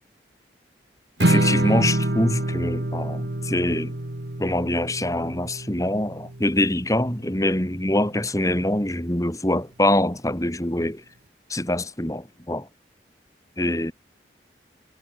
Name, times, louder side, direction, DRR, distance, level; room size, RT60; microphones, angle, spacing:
voice 1, 1.2-4.0 4.4-11.0 11.5-12.7 13.6-13.9, left 1 dB, 20° left, 2.4 m, -24 dB
Strum, 1.2-7.5, right 1 dB, 65° right, 2.0 m, -26 dB
head